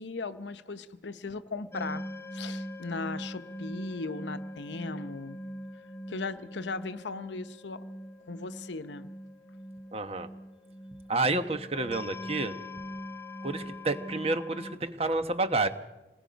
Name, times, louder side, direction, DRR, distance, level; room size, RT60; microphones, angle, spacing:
voice 1, 0.0-2.0 2.3-5.4 6.1-7.9 8.3-9.1, left 3 dB, 80° left, 11 dB, 0.9 m, -38 dB
sound 1, 1.7-14.8, equal, 15° left, 1.0 m, -41 dB
voice 2, 9.9-10.3 11.1-12.6 13.4-15.7, right 2 dB, 35° right, 9 dB, 1.1 m, -29 dB
27.0 x 20.0 x 5.2 m, 1.1 s
head